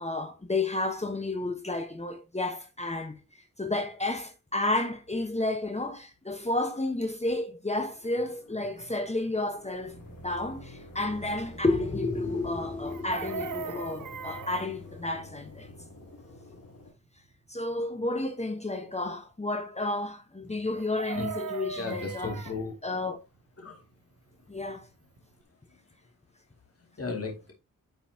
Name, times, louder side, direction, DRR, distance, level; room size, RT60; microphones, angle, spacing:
voice 1, 0.0-3.2 3.6-10.0 10.2-15.7 17.5-22.3 22.8-23.2 24.5-24.9, left 2 dB, 20° left, 1.1 m, -31 dB
sound 1, 7.7-16.9, left 1 dB, 85° left, 4.5 m, -48 dB
Chicken rooster, 12.9-14.7 20.7-22.6 24.8-24.9 25.2-25.4, right 6 dB, 70° right, 0.8 m, -38 dB
voice 2, 21.8-22.8 23.6-23.8 24.4-24.5 25.7-25.8 26.8-27.5, left 3 dB, 45° left, 2.4 m, -35 dB
10.0 x 5.6 x 2.8 m
wide cardioid pair, 115°, 33 cm